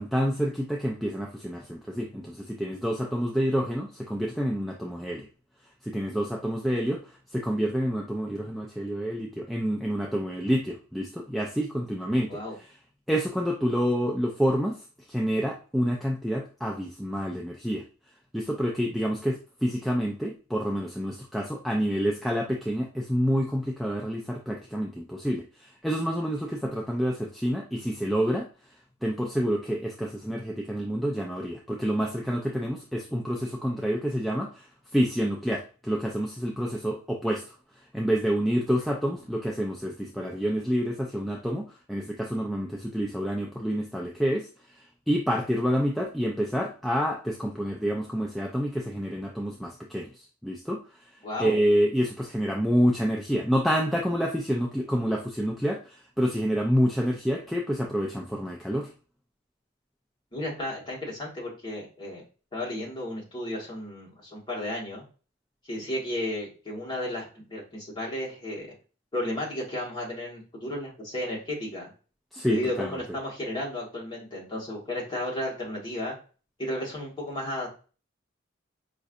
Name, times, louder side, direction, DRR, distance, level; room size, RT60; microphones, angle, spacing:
voice 1, 0.0-5.3 5.8-12.4 13.1-17.8 18.3-28.5 29.0-34.7 34.9-58.9 72.3-73.0, equal, ahead, -1 dB, 0.3 m, -28 dB
voice 2, 51.2-51.5 60.3-62.2 62.5-65.0 65.6-68.7 69.1-71.9 72.5-76.1 76.6-77.7, left 1 dB, 25° left, -4 dB, 1.5 m, -33 dB
5.2 x 2.5 x 2.5 m, 0.36 s
head